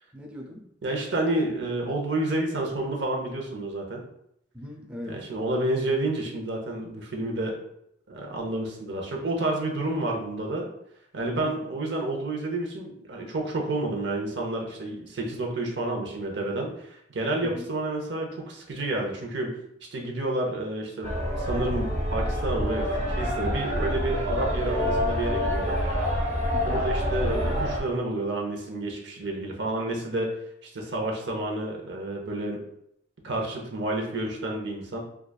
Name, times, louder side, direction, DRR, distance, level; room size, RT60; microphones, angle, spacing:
voice 1, 0.1-0.6 4.5-5.2 11.3-11.6 17.4-17.7 26.5-26.8, left 1 dB, 5° right, 0 dB, 0.4 m, -39 dB
voice 2, 0.8-4.0 5.1-7.6 8.1-10.7 11.1-19.5 19.9-25.8 26.6-30.3 30.6-32.6 33.2-35.0, right 2 dB, 85° right, 0 dB, 0.7 m, -30 dB
sound 1, 21.0-27.8, equal, 40° right, 0.7 m, -27 dB
4.8 x 2.3 x 2.3 m, 0.76 s
head